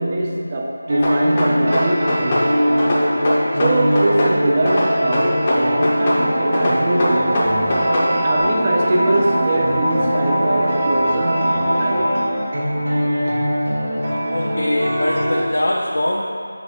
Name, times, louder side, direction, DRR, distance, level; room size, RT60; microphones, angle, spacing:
voice 1, 0.0-2.8 3.6-7.8 8.2-12.1, right 2 dB, 20° right, -1 dB, 0.5 m, -22 dB
sound 1, 0.9-15.5, equal, 65° right, 1.3 m, -21 dB
sound 2, 1.0-2.5 2.8-4.4 4.7-6.2 6.5-8.1, left 1 dB, 20° left, 0.6 m, -21 dB
sound 3, 6.1-12.0, right 1 dB, 85° right, 1.1 m, -24 dB
voice 2, 14.3-16.3, left 1 dB, 60° left, -2 dB, 0.6 m, -22 dB
5.5 x 4.8 x 3.8 m, 2.4 s
figure-of-eight pair, 175°, 0 cm